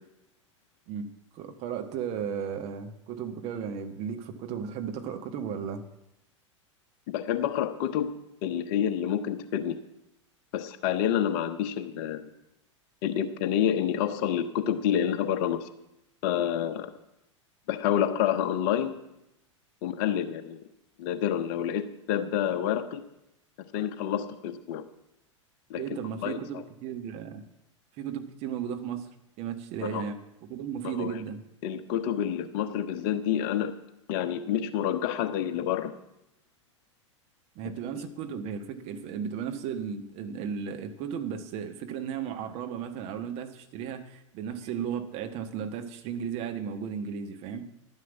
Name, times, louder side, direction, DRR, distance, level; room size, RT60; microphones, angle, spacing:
voice 1, 0.9-5.8 25.8-27.5 28.0-29.1 29.4-31.4 37.5-47.6, right 7 dB, 40° right, 7 dB, 1.3 m, -35 dB
voice 2, 7.1-8.1 8.4-9.8 10.5-12.3 13.0-15.7 16.2-16.9 17.7-19.0 19.8-20.6 21.0-23.0 23.7-24.8 25.7-25.8 26.2-26.6 29.8-30.0 30.8-31.2 31.6-33.7 34.1-35.9 38.0-38.1, left 10 dB, 45° left, 11 dB, 1.0 m, -28 dB
11.5 x 9.5 x 7.2 m, 0.87 s
figure-of-eight pair, 90°, 16 cm